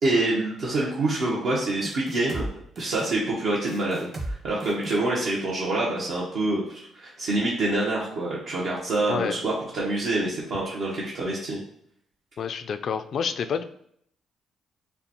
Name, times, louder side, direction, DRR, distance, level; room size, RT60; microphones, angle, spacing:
voice 1, 0.0-2.5 2.8-11.6, right 2 dB, 70° right, -5 dB, 0.9 m, -26 dB
sound 1, 1.8-2.5 2.8-3.1 3.7-4.3 4.6-5.0, right 1 dB, 45° right, 1.2 m, -34 dB
voice 2, 12.4-13.6, left 6 dB, 60° left, 10 dB, 0.3 m, -28 dB
6.8 x 2.3 x 2.9 m, 0.67 s
cardioid pair, 90°, 0 cm